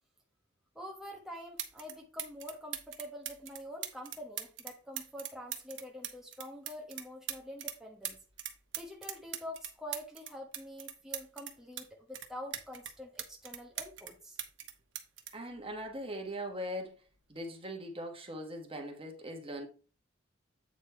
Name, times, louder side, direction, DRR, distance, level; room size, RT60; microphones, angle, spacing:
voice 1, 0.7-8.2 8.8-14.4, left 1 dB, ahead, 1.2 m, -46 dB
sound 1, 1.1-1.2 1.6-1.9 2.2-7.8 8.0-11.9 12.1-14.1 14.4-16.2 17.2-17.4, right 10 dB, 70° right, 1.2 m, -41 dB
voice 2, 15.3-17.0 17.3-19.7, equal, 30° right, 1.4 m, -40 dB
8.5 x 4.3 x 4.4 m
head